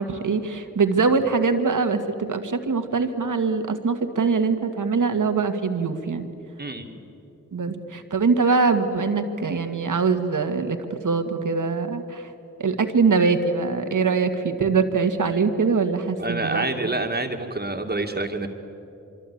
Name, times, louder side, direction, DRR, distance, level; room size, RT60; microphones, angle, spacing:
voice 1, 0.0-6.3 7.5-12.3 12.6-16.6, right 4 dB, 70° right, 7 dB, 1.9 m, -23 dB
voice 2, 6.6-7.0 16.2-18.5, right 2 dB, 30° right, 4 dB, 2.4 m, -27 dB
25.0 x 23.5 x 8.7 m, 2.9 s
cardioid pair, 45°, 32 cm